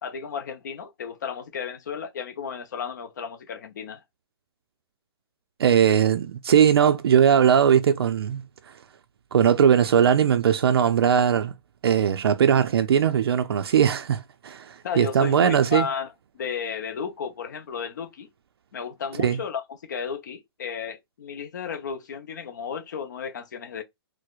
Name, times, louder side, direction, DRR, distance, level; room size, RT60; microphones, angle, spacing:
voice 1, 0.0-4.0 14.8-16.1 16.3-18.3 18.7-23.8, left 6 dB, 50° left, 0.6 m, -33 dB
voice 2, 5.6-8.4 9.3-11.5 11.8-15.9 19.2-19.4, right 8 dB, 75° right, 0.4 m, -20 dB
4.6 x 2.1 x 2.3 m
hypercardioid pair, 175°, 13 cm